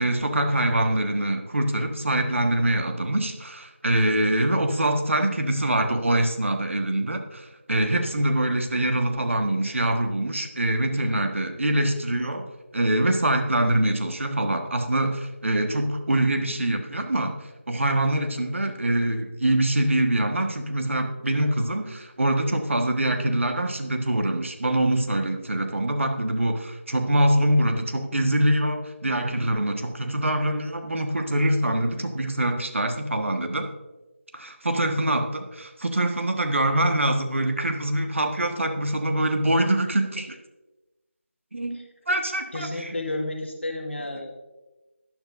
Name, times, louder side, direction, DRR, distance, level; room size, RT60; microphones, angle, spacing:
voice 1, 0.0-12.5 12.7-33.7 34.3-40.4 41.5-42.9, right 1 dB, 70° right, 6 dB, 1.4 m, -24 dB
voice 2, 42.5-44.4, left 2 dB, 60° left, 1 dB, 1.8 m, -31 dB
12.0 x 10.5 x 2.6 m, 1.1 s
figure-of-eight pair, 170°, 7 cm